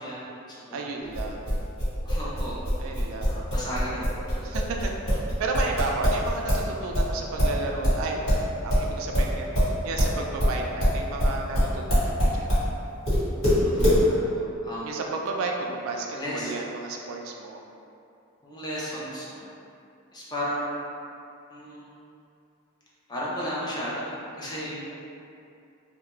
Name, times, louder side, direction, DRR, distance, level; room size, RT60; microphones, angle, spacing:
voice 1, 0.0-0.8 2.1-2.6 3.3-4.1 13.6-15.0 16.1-16.5 18.4-19.5 20.1-20.9 21.5-22.0 23.1-24.9, equal, 20° left, -7 dB, 0.4 m, -34 dB
voice 2, 0.7-1.5 2.8-3.4 4.4-8.2 8.6-12.5 14.8-17.6, right 3 dB, 80° right, 1 dB, 0.3 m, -33 dB
sound 1, 1.1-6.7 6.9-12.7 13.1-14.0, equal, 75° left, 1.4 m, -23 dB
2.4 x 2.1 x 2.9 m, 2.6 s
head